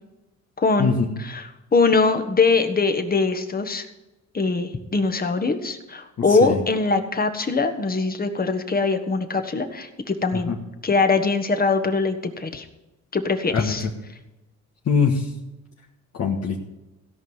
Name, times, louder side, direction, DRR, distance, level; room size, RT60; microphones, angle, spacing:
voice 1, 0.6-1.0 1.3-1.4 1.7-3.9 4.3-10.5 10.8-12.6 13.1-13.8, left 4 dB, 30° left, 7 dB, 1.6 m, -22 dB
voice 2, 6.3-6.6 10.3-10.6 13.5-13.9 14.8-15.3 16.1-16.6, left 5 dB, 55° left, 0 dB, 1.7 m, -23 dB
16.5 x 5.5 x 8.2 m, 1.0 s
cardioid pair, 90°, 30 cm